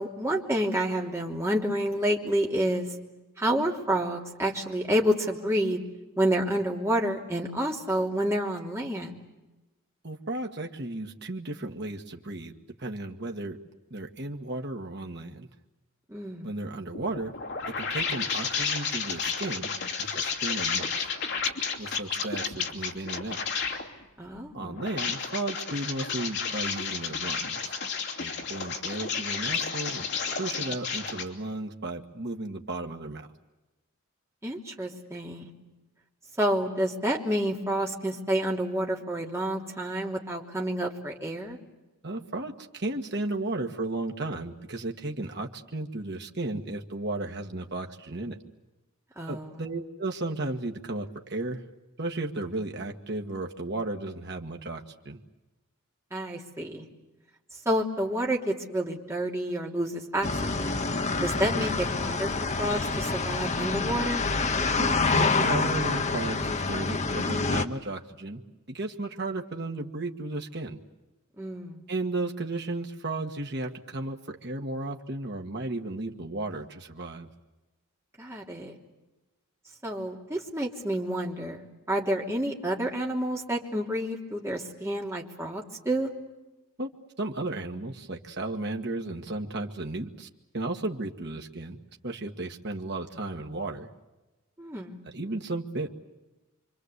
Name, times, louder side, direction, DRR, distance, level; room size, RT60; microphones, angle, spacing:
voice 1, 0.0-2.9 3.4-5.8 6.2-9.2 16.1-16.5 24.2-24.8 34.4-35.5 36.4-41.6 49.2-49.6 56.1-56.9 57.6-60.8 61.2-62.3 62.6-64.2 71.4-71.8 78.2-78.8 79.8-86.1 94.6-95.0, right 1 dB, 15° right, -1 dB, 3.1 m, -29 dB
voice 2, 10.0-12.5 12.8-13.6 13.9-15.5 16.4-17.3 17.7-19.7 20.0-21.1 21.8-23.4 24.5-27.8 28.2-30.1 30.4-33.3 42.0-48.4 49.3-51.6 52.0-55.2 64.8-68.4 68.7-70.8 71.9-77.3 86.8-86.9 87.2-90.3 90.5-91.8 92.0-93.9 95.1-95.9, right 2 dB, 50° right, 2 dB, 1.8 m, -34 dB
sound 1, 16.9-23.9 24.7-31.2, left 5 dB, 55° left, 2.9 m, -31 dB
sound 2, 60.2-67.7, left 3 dB, 30° left, 1.0 m, -27 dB
26.5 x 25.0 x 8.2 m, 1.1 s
head